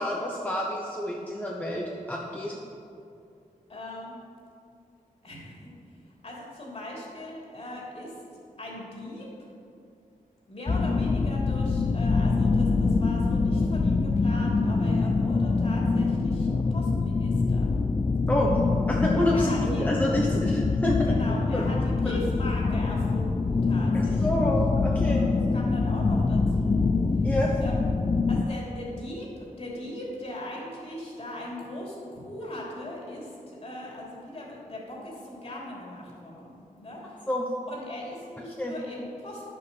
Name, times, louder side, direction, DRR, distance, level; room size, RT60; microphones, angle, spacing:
voice 1, 0.0-2.6 18.3-18.6 18.9-20.9 21.5-21.6 22.0-22.2 23.9-25.2 27.2-27.6 37.3-37.5 38.6-38.7, left 1 dB, 10° left, -2 dB, 1.0 m, -28 dB
voice 2, 3.7-4.1 5.2-8.2 8.6-9.2 10.5-17.7 19.3-19.9 20.4-20.6 21.0-24.4 24.8-27.3 27.6-27.8 28.3-37.3 37.7-39.4, left 1 dB, 45° left, -3 dB, 3.2 m, -39 dB
sound 1, 10.7-28.4, left 3 dB, 25° left, 0.4 m, -25 dB
11.0 x 7.0 x 6.9 m, 2.5 s
wide cardioid pair, 135°, 14 cm